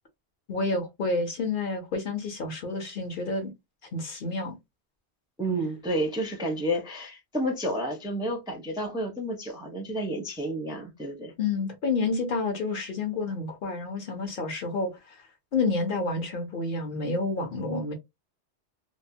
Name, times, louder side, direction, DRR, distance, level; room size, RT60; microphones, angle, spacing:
voice 1, 0.5-3.5 3.9-4.5 11.4-15.2 15.5-17.9, left 3 dB, 55° left, 0.8 m, -29 dB
voice 2, 5.4-11.3, equal, 5° right, 0.5 m, -30 dB
2.9 x 2.0 x 2.6 m
omnidirectional pair, 1.1 m